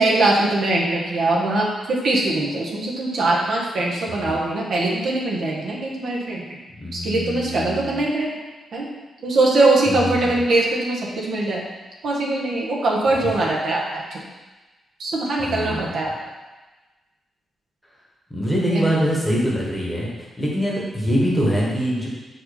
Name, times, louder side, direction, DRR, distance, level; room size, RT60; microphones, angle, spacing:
voice 1, 0.0-6.4 6.9-8.3 8.7-8.9 9.2-11.6 12.0-14.2 15.0-16.1 18.6-18.9, right 2 dB, 60° right, -3 dB, 1.3 m, -21 dB
voice 2, 6.8-8.0 9.9-10.2 15.4-15.8 18.3-20.1 20.4-22.1, equal, 5° left, -5 dB, 1.4 m, -23 dB
5.6 x 5.3 x 4.3 m, 1.2 s
wide cardioid pair, 165°, 0 cm